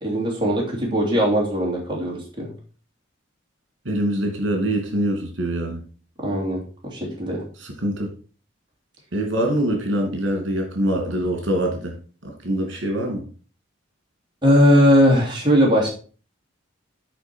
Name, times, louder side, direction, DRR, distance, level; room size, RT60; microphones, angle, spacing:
voice 1, 0.0-2.5 6.2-7.4 14.4-15.9, equal, 25° right, -3 dB, 2.9 m, -19 dB
voice 2, 3.8-5.8 7.6-8.1 9.1-11.9 12.2-13.2, right 1 dB, 75° right, 2 dB, 2.5 m, -24 dB
9.1 x 5.2 x 4.6 m, 0.39 s
head